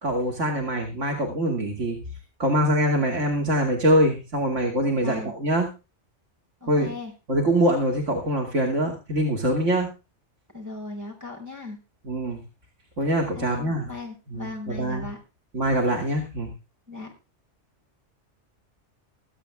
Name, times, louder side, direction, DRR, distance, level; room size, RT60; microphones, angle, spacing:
voice 1, 0.0-2.0 2.4-5.7 6.7-6.9 7.3-9.9 12.1-12.4 13.0-13.9 14.3-15.0 15.5-16.5, right 1 dB, 90° right, 4 dB, 2.9 m, -24 dB
voice 2, 6.6-7.1 10.5-11.8 13.2-15.2 16.9-17.1, left 3 dB, 15° right, 0 dB, 6.5 m, -37 dB
23.5 x 8.3 x 3.6 m, 0.30 s
omnidirectional pair, 1.2 m